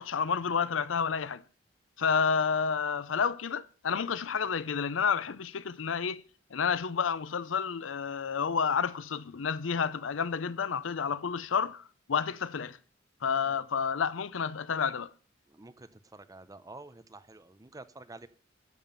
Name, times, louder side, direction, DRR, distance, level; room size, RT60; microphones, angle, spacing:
voice 1, 0.0-1.4 2.0-6.2 6.5-11.8 12.1-12.8 13.2-15.1, left 6 dB, 85° left, 0.6 m, -30 dB
voice 2, 15.5-18.3, right 2 dB, 20° right, 0.7 m, -49 dB
11.0 x 7.0 x 5.5 m
head